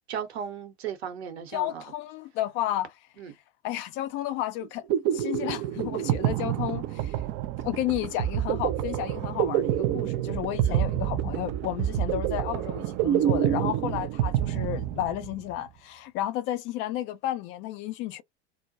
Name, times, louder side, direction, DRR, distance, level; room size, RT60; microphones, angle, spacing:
voice 1, 0.1-1.8 3.2-3.3 10.7-10.8, right 8 dB, 65° right, 0.9 m, -36 dB
voice 2, 1.5-2.9 3.6-4.8 5.1-7.2 7.6-18.2, left 13 dB, 35° left, 0.4 m, -32 dB
sound 1, 4.6-15.4, right 11 dB, 35° right, 0.4 m, -27 dB
2.1 x 2.1 x 2.7 m
figure-of-eight pair, 80°, 34 cm